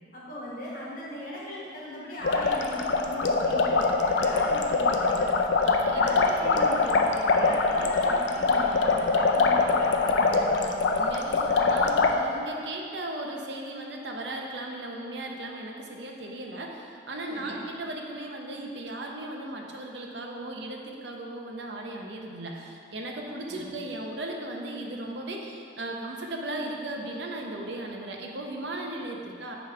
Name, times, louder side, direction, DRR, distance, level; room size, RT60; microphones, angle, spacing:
voice 1, 0.1-5.3 5.9-10.5 17.3-17.6 23.3-23.6, equal, 50° left, -6 dB, 1.5 m, -39 dB
sound 1, 2.2-12.1, left 3 dB, 80° left, 0.5 m, -23 dB
voice 2, 5.6-6.4 10.6-29.6, right 1 dB, 75° right, 1 dB, 0.7 m, -37 dB
9.3 x 3.2 x 4.8 m, 2.4 s
head